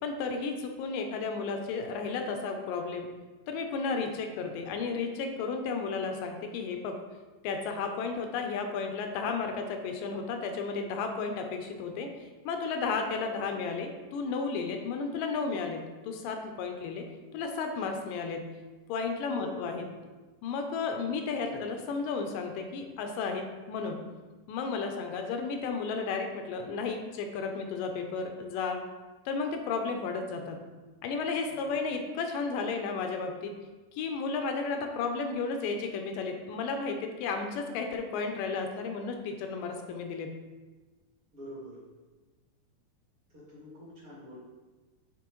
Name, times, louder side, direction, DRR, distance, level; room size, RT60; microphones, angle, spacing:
voice 1, 0.0-3.1 3.5-7.0 7.4-12.1 12.5-17.1 17.3-18.5 18.9-19.8 20.4-24.0 24.5-28.8 29.3-30.6 31.0-33.5 33.9-40.3, left 4 dB, 80° left, 4 dB, 2.2 m, -33 dB
voice 2, 19.3-19.7 21.3-21.6 31.5-31.7 41.3-41.8 43.3-44.4, left 1 dB, 45° right, -7 dB, 2.4 m, -46 dB
9.4 x 3.9 x 3.0 m, 1.2 s
omnidirectional pair, 4.1 m